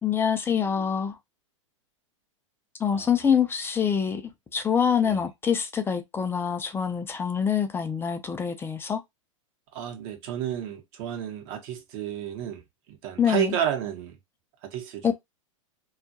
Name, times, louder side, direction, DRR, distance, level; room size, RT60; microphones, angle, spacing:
voice 1, 0.0-1.2 2.8-9.0 13.2-13.6 15.0-15.1, left 7 dB, 15° left, 0.4 m, -25 dB
voice 2, 9.7-12.6 12.9-14.2 14.6-15.1, right 9 dB, 50° right, 0.9 m, -31 dB
2.3 x 2.1 x 2.7 m
hypercardioid pair, 105°, 17 cm